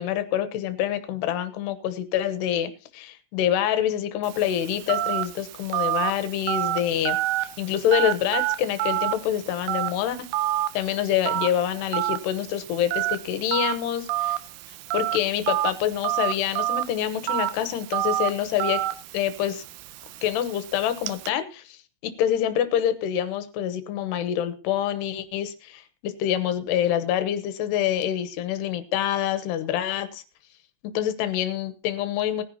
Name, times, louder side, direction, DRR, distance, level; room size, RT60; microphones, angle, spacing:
voice 1, 0.0-10.2 10.7-14.4 14.9-18.8 19.1-19.6 20.2-30.2 30.9-32.4, left 10 dB, 75° left, 12 dB, 2.9 m, -26 dB
Telephone, 4.2-21.3, right 14 dB, 85° right, 2.2 m, -29 dB
19.0 x 10.5 x 2.9 m, 0.34 s
omnidirectional pair, 5.3 m